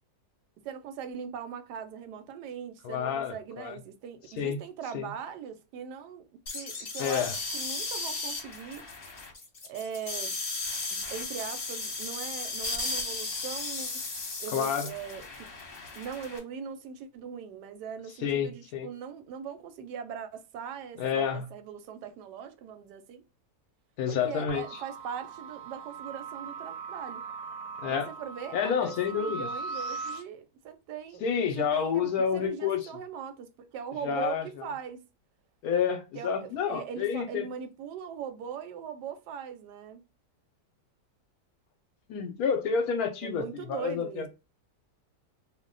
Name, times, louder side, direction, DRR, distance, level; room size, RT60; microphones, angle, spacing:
voice 1, 0.6-6.3 6.5-7.3 7.5-8.9 9.6-10.4 10.9-14.0 14.4-15.5 15.9-23.2 24.1-27.2 27.9-31.2 31.6-35.0 36.1-40.0 43.2-44.3, right 7 dB, 90° right, 1.2 m, -40 dB
voice 2, 2.8-3.8 4.4-4.6 4.9-5.1 7.0-7.4 14.5-14.9 18.2-18.9 21.0-21.5 24.0-24.7 27.8-28.1 28.5-29.5 31.2-32.8 34.0-34.5 35.6-37.5 42.1-44.3, left 7 dB, 70° left, 1.0 m, -29 dB
sound 1, 6.5-16.4, left 3 dB, 45° left, 0.9 m, -35 dB
sound 2, 24.5-30.2, right 4 dB, 70° right, 0.9 m, -39 dB
2.7 x 2.1 x 3.8 m
omnidirectional pair, 1.7 m